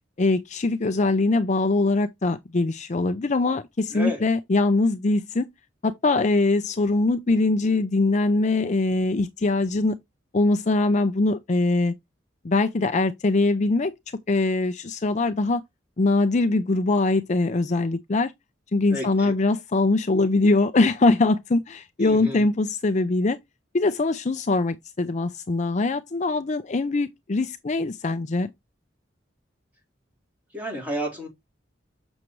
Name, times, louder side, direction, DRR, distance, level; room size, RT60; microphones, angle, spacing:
voice 1, 0.2-5.5 5.8-10.0 10.3-11.9 12.4-13.9 14.3-15.6 16.0-18.3 18.7-23.4 23.7-28.5, left 2 dB, 40° left, 0.5 m, -22 dB
voice 2, 3.9-4.2 18.9-19.3 22.0-22.5 30.5-31.3, equal, 10° right, 4.2 m, -31 dB
7.1 x 6.4 x 3.1 m
head